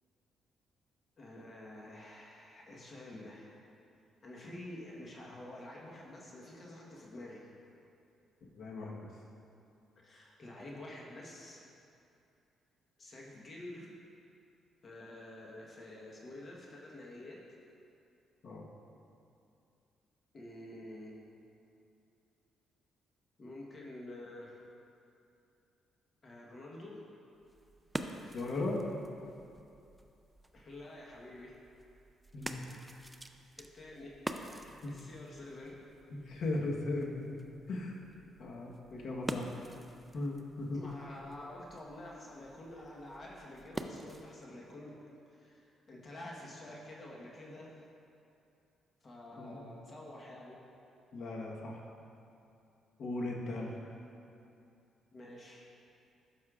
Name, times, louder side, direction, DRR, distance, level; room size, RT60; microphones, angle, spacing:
voice 1, 1.2-3.6 4.2-7.5 9.9-11.7 13.0-13.9 14.8-17.4 20.3-21.2 23.4-24.6 26.2-27.0 30.5-31.6 33.6-34.2 34.6-35.8 40.7-45.0 45.3-47.8 49.0-50.6 55.1-55.7, left 1 dB, 40° left, -3 dB, 1.2 m, -48 dB
voice 2, 8.6-9.1 18.4-18.6 28.3-28.8 32.3-32.6 34.8-34.9 36.1-37.4 37.7-38.0 38.4-39.5 40.1-40.8 49.4-49.6 51.1-51.8 53.0-53.7, left 2 dB, 60° left, -1 dB, 1.2 m, -37 dB
sound 1, 27.3-44.5, right 1 dB, 10° right, 0.4 m, -47 dB
12.5 x 6.4 x 2.4 m, 2.7 s
cardioid pair, 90°, 0 cm